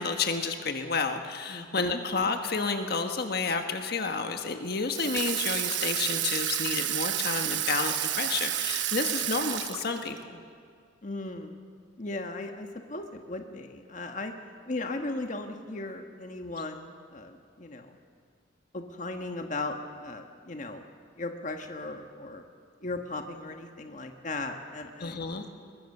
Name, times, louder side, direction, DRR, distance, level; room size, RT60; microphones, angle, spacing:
voice 1, 0.0-10.4 25.0-25.5, left 4 dB, 60° left, 6 dB, 1.4 m, -30 dB
voice 2, 1.5-2.0 11.0-11.6 12.0-14.3 14.6-18.0 18.7-20.9 21.2-22.4 22.8-25.2, left 2 dB, 45° left, 5 dB, 1.4 m, -37 dB
Water tap faucet / Sink (filling or washing), 4.9-10.2, right 12 dB, 70° right, 0.9 m, -30 dB
22.0 x 22.0 x 6.7 m, 2.1 s
head